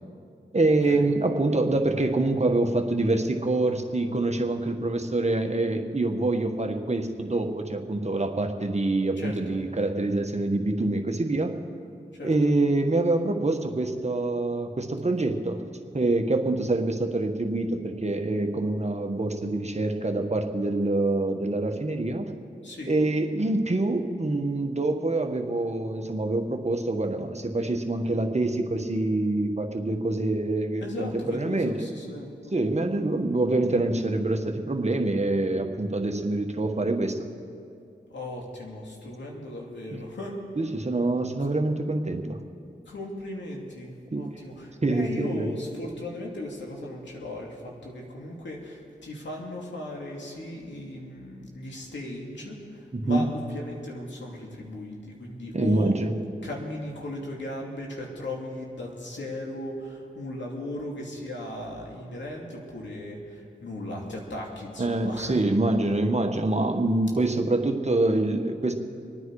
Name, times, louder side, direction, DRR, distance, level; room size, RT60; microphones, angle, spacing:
voice 1, 0.5-11.5 12.2-15.6 15.9-22.3 22.9-31.9 32.5-37.3 39.9-40.0 40.6-42.4 44.1-44.2 44.8-45.5 52.9-53.3 55.5-56.1 64.8-68.7, right 2 dB, 35° right, 4 dB, 1.5 m, -25 dB
voice 2, 9.2-9.6 12.1-12.5 22.6-23.0 30.8-32.5 32.9-33.1 38.1-40.4 42.9-55.9 56.4-65.5, left 1 dB, 75° left, -1 dB, 2.8 m, -37 dB
26.5 x 9.5 x 4.9 m, 2.5 s
cardioid pair, 45°, 19 cm